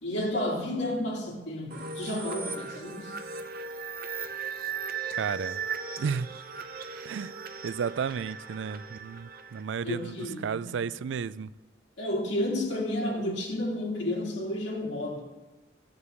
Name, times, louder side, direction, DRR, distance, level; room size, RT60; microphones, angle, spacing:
voice 1, 0.0-3.2 9.8-10.8 12.0-15.2, left 1 dB, 70° left, 2.6 m, -31 dB
sound 1, 1.7-10.3, right 5 dB, 50° right, 1.0 m, -38 dB
voice 2, 5.1-5.6 6.0-6.3 7.0-10.1 10.4-11.5, right 6 dB, 70° right, 0.4 m, -33 dB
14.5 x 5.3 x 8.1 m
head